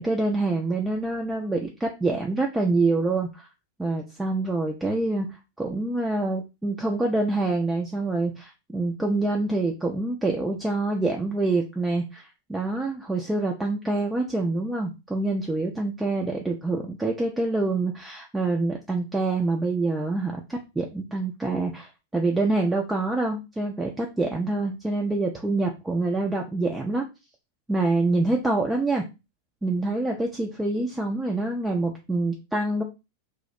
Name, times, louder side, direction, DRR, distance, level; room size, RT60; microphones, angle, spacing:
voice 1, 0.0-3.5 3.8-5.3 5.6-27.0 27.7-29.0 29.6-32.8, right 2 dB, 5° right, 0 dB, 0.3 m, -26 dB
2.3 x 2.0 x 2.7 m, 0.27 s
figure-of-eight pair, 90°, 0 cm